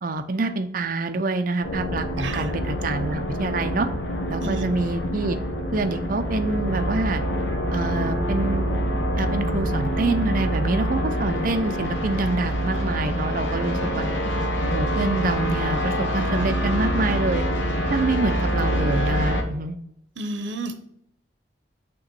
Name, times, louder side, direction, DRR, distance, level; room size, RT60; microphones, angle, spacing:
voice 1, 0.0-3.9 4.3-5.4 5.7-7.2 7.7-8.6 9.2-14.0 14.6-17.4 17.9-19.8, right 3 dB, 50° right, 8 dB, 0.6 m, -26 dB
sound 1, 1.6-19.4, equal, 80° left, 1.0 m, -25 dB
voice 2, 2.2-2.5 4.4-4.6 20.2-20.8, right 2 dB, 85° right, 7 dB, 0.8 m, -31 dB
6.7 x 3.0 x 5.3 m, 0.74 s
head